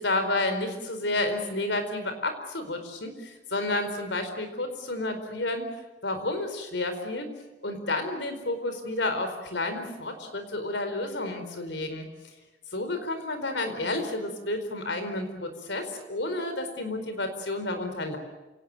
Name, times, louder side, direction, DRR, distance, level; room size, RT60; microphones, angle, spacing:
voice 1, 0.0-5.7 6.0-7.3 7.6-12.1 12.7-18.2, left 2 dB, 80° left, 8 dB, 4.5 m, -30 dB
28.5 x 18.0 x 9.5 m, 1.1 s
head